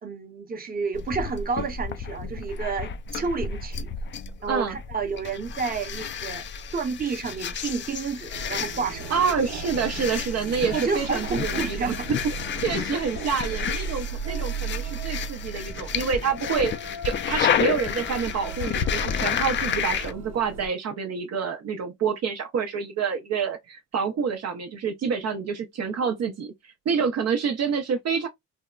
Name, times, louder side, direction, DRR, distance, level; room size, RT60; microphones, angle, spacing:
voice 1, 0.0-3.9 4.4-6.4 6.7-9.1 10.7-12.1, right 5 dB, 30° right, 0.8 m, -30 dB
sound 1, 0.9-20.1, left 7 dB, 40° left, 0.4 m, -31 dB
sound 2, 8.3-20.7, right 5 dB, 85° right, 0.9 m, -36 dB
voice 2, 9.1-12.2 12.6-16.7 17.0-26.5 26.9-28.3, right 6 dB, 60° right, 0.6 m, -27 dB
3.5 x 2.1 x 2.3 m
cardioid pair, 90°, 30 cm